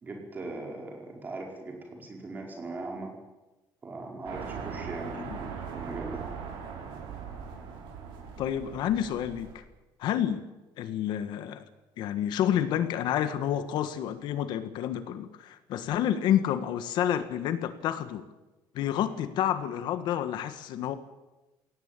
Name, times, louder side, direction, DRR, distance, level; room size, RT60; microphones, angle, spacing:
voice 1, 0.0-3.1 3.8-6.2, right 3 dB, 20° right, 1 dB, 4.7 m, -39 dB
sound 1, 4.2-9.5, right 6 dB, 85° right, 6.2 m, -40 dB
voice 2, 8.4-9.6 10.0-10.4 10.8-11.6 12.0-18.2 18.7-20.9, left 10 dB, 65° left, 11 dB, 1.5 m, -29 dB
22.0 x 17.5 x 9.0 m, 1.1 s
cardioid pair, 175°, 8 cm